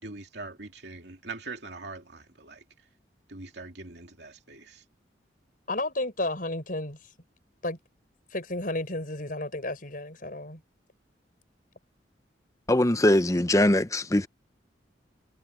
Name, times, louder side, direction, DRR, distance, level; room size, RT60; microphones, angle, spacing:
voice 1, 0.0-2.6 3.3-4.8, right 3 dB, 65° right, 2.8 m, -42 dB
voice 2, 5.7-7.1 7.6-7.8 8.3-10.6, left 2 dB, 50° left, 7.0 m, -32 dB
voice 3, 12.7-14.3, left 1 dB, 20° left, 0.7 m, -21 dB
head